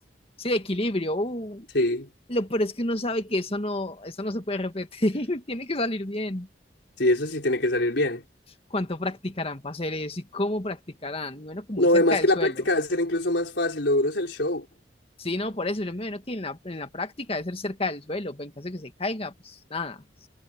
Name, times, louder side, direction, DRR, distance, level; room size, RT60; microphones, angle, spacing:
voice 1, 0.4-1.7 2.3-6.5 8.7-12.7 15.2-20.3, left 1 dB, 35° left, 1.9 m, -30 dB
voice 2, 1.7-2.1 7.0-8.2 11.8-14.7, left 1 dB, 70° left, 4.6 m, -23 dB
head